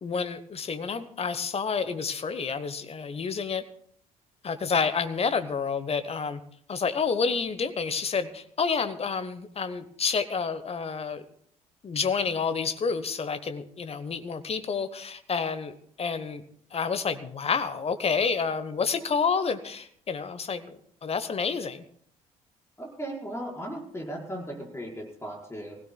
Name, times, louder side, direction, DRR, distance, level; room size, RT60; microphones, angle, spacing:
voice 1, 0.0-3.6 4.4-6.4 6.7-11.2 11.8-16.4 16.7-21.8, left 5 dB, 30° left, 12 dB, 1.2 m, -29 dB
voice 2, 22.8-25.8, right 1 dB, 15° left, -1 dB, 5.1 m, -37 dB
24.0 x 16.5 x 2.3 m, 0.63 s
figure-of-eight pair, 50°, 19 cm